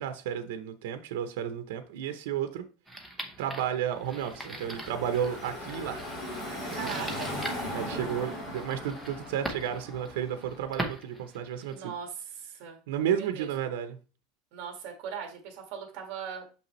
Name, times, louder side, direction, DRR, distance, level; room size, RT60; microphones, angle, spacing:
voice 1, 0.0-2.6 3.4-6.0 6.7-7.2 7.7-11.8 12.9-14.0, right 9 dB, 80° right, 0.7 m, -32 dB
sound 1, 2.9-11.9, right 1 dB, ahead, 0.8 m, -42 dB
Car passing by / Traffic noise roadway noise, 4.0-11.0, left 1 dB, 25° left, 2.2 m, -38 dB
voice 2, 6.7-7.3 7.9-8.0 11.7-12.8 13.1-13.5 14.5-16.5, right 7 dB, 45° right, 1.9 m, -39 dB
6.6 x 5.5 x 3.1 m
supercardioid pair, 175°, 0 cm